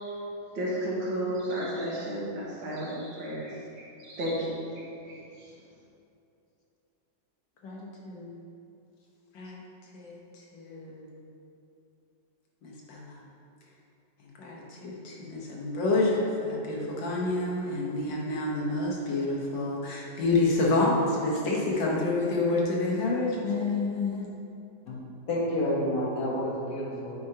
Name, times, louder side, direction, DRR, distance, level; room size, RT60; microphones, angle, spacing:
voice 1, 0.6-3.5 4.0-5.1, equal, 80° right, -6 dB, 2.1 m, -32 dB
voice 2, 8.1-8.4 9.3-9.6 9.9-11.1 12.6-13.2 14.4-24.3, left 2 dB, 85° left, -3 dB, 1.8 m, -28 dB
voice 3, 25.3-27.1, left 1 dB, 55° left, -5 dB, 1.7 m, -29 dB
9.2 x 4.9 x 2.8 m, 2.7 s
omnidirectional pair, 1.9 m